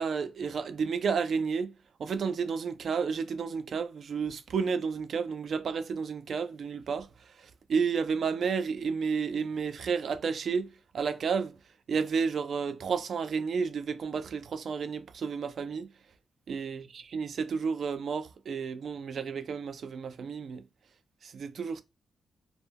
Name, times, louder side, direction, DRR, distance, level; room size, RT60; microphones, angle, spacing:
voice 1, 0.0-1.7 2.0-7.1 7.4-11.5 11.9-15.9 16.5-20.6 21.2-21.8, right 5 dB, 55° right, 0.3 m, -31 dB
2.1 x 2.1 x 3.3 m
wide cardioid pair, 135°, 0 cm